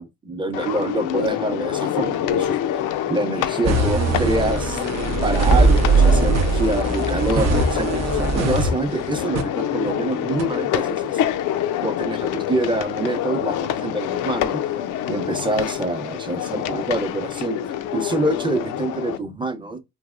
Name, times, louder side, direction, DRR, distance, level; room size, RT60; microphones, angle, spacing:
voice 1, 0.0-2.6 3.1-4.9 5.2-11.3 11.8-14.6 15.1-17.6 17.9-19.8, right 2 dB, 15° right, 0.6 m, -26 dB
sound 1, 0.5-19.2, left 10 dB, 90° left, 0.5 m, -26 dB
sound 2, 3.6-9.4 9.9-10.0 10.4-10.5, right 3 dB, 60° right, 0.6 m, -20 dB
3.3 x 2.9 x 2.3 m
cardioid pair, 90°, 30 cm